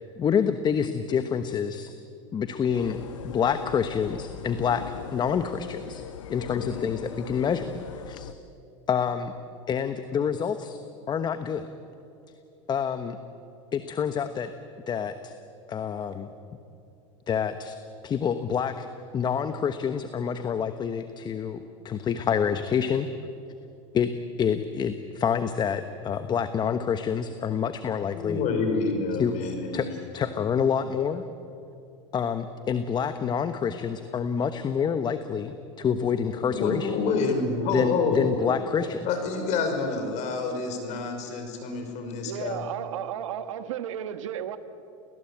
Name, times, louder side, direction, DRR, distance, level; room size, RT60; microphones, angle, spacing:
voice 1, 0.0-1.9 2.3-4.8 5.1-6.0 6.3-7.7 8.1-8.3 8.9-9.3 9.7-10.8 11.1-11.6 12.7-13.2 13.7-14.5 14.9-15.3 15.7-16.3 17.3-17.8 18.0-18.9 19.1-23.1 23.9-24.1 24.4-28.4 29.2-29.4 29.7-31.2 32.1-36.9 37.7-39.0, left 7 dB, 25° left, 1.2 m, -27 dB
sound 1, 2.7-8.3, left 9 dB, 85° left, 1.1 m, -39 dB
voice 2, 28.1-30.1 36.4-38.5 39.0-42.6, left 4 dB, 45° left, 5.9 m, -28 dB
voice 3, 42.2-44.6, right 10 dB, 80° right, 1.6 m, -33 dB
29.0 x 19.0 x 8.7 m
supercardioid pair, 115°, 16 cm